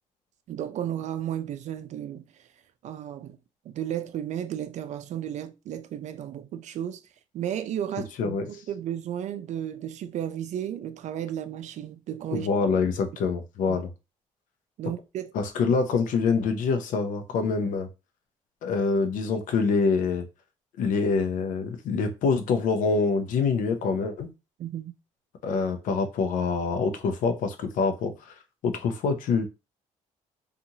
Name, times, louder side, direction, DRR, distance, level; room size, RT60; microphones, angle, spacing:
voice 1, 0.5-2.2 2.8-3.4 3.7-7.0 7.3-12.5 13.7-13.8 14.8-15.3 24.6-24.9, right 10 dB, 60° right, 0.4 m, -33 dB
voice 2, 8.2-8.6 12.3-13.9 15.3-17.9 18.6-20.2 20.8-24.3 25.4-28.3 28.6-29.5, left 4 dB, 70° left, 0.6 m, -25 dB
2.7 x 2.4 x 2.7 m
supercardioid pair, 80°, 14 cm